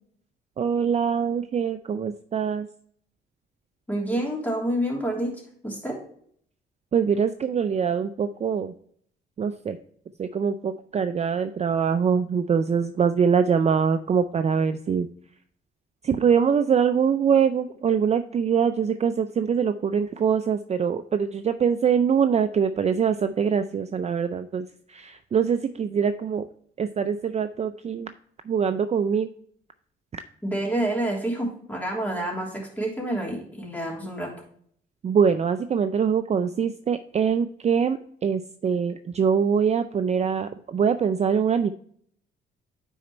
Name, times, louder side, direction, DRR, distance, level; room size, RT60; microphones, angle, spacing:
voice 1, 0.6-2.7 6.9-8.7 9.4-9.8 10.2-15.1 16.0-26.5 26.8-28.1 28.5-29.3 35.0-41.7, right 7 dB, 35° right, 9 dB, 0.4 m, -23 dB
voice 2, 3.9-6.0 30.4-34.3, right 1 dB, 10° left, -2 dB, 3.1 m, -28 dB
10.0 x 4.4 x 3.1 m, 0.62 s
cardioid pair, 90°, 20 cm